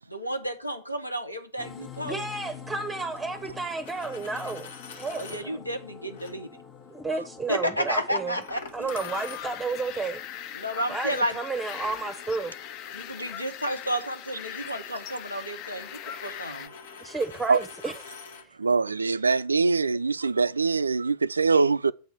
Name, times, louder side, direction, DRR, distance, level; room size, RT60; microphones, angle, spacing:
voice 1, 0.1-2.2 5.2-6.6 7.5-8.9 10.5-11.4 12.9-16.7, equal, 90° left, 1.2 m, -32 dB
sound 1, 1.6-17.8, left 7 dB, 25° left, 1.0 m, -48 dB
voice 2, 2.0-5.6 6.9-8.4 8.7-10.2 10.9-12.5 17.0-17.9, right 3 dB, 10° right, 0.8 m, -32 dB
Coin (dropping), 3.7-5.5 6.1-6.3 8.4-9.8 11.7-18.5, left 5 dB, 60° left, 1.2 m, -46 dB
sound 2, 8.9-16.7, left 10 dB, 40° left, 0.6 m, -40 dB
voice 3, 18.6-21.9, right 4 dB, 75° right, 0.3 m, -23 dB
7.9 x 4.4 x 7.1 m
figure-of-eight pair, 90°, 0 cm